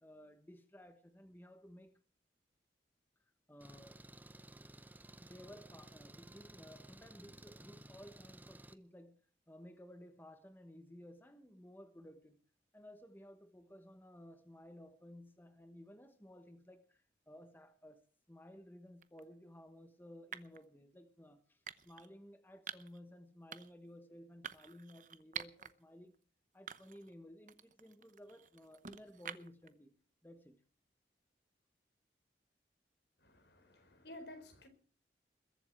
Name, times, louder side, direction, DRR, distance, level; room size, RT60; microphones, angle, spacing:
voice 1, 0.0-1.9 3.5-4.0 5.2-9.2 9.5-12.4 12.7-26.2 26.5-29.9 30.2-30.6, equal, 10° left, 1.1 m, -56 dB
Engine, 3.6-8.7, right 1 dB, 10° right, 0.6 m, -56 dB
sound 1, 19.0-19.2 20.3-20.6 21.7-22.1 22.7-23.0 23.5-23.9 24.4-25.7 26.1-26.2 26.7-27.1 27.5-29.7, right 8 dB, 45° right, 0.8 m, -48 dB
voice 2, 33.2-34.7, left 1 dB, 75° left, 4.4 m, -53 dB
21.5 x 7.9 x 7.6 m
head